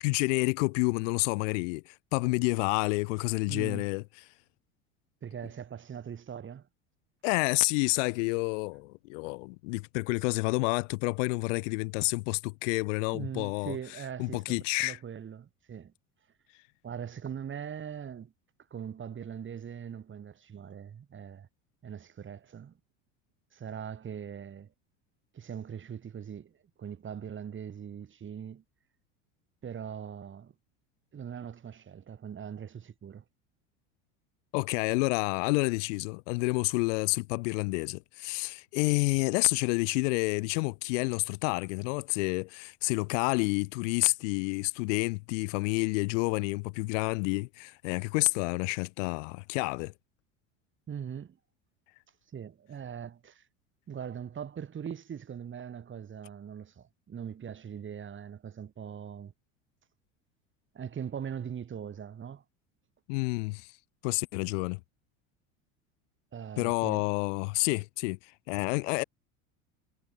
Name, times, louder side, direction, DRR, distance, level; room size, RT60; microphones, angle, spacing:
voice 1, 0.0-4.0 7.2-13.8 14.2-15.0 34.5-49.9 63.1-63.7 64.0-64.8 66.6-69.0, left 29 dB, 70° left, 0.7 m, -29 dB
voice 2, 3.5-3.9 5.2-6.7 13.1-15.9 16.8-18.3 18.7-21.5 21.8-22.8 23.5-24.7 25.3-28.6 29.6-30.5 31.1-33.2 50.9-51.4 52.3-53.5 53.9-59.3 60.7-62.4 66.3-67.1, right 8 dB, 30° right, 2.9 m, -41 dB
hypercardioid pair, 90°, 39 cm